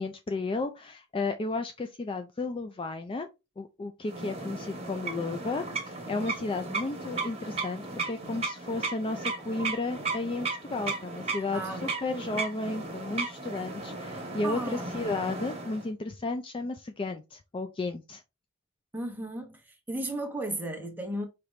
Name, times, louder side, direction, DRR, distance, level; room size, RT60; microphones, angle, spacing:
voice 1, 0.0-3.3 3.6-18.2, left 3 dB, 25° left, 0.3 m, -33 dB
sound 1, 4.1-15.9, right 3 dB, 30° right, 1.4 m, -35 dB
voice 2, 14.4-14.9 18.9-19.6 19.9-21.3, right 1 dB, 10° right, 1.0 m, -34 dB
5.0 x 2.9 x 3.1 m
head